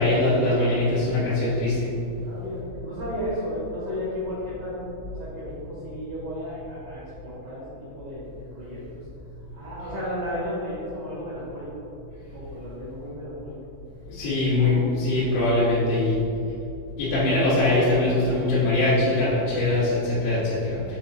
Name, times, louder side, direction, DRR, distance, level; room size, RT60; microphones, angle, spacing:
voice 1, 0.0-1.9 14.1-16.2 17.0-21.0, left 2 dB, 80° left, -12 dB, 3.9 m, -22 dB
voice 2, 2.2-7.6 7.9-9.0 9.5-11.7 12.3-13.6 14.2-14.3 14.6-15.2, equal, 80° right, -10 dB, 1.3 m, -34 dB
8.2 x 3.9 x 4.2 m, 2.7 s
omnidirectional pair, 5.4 m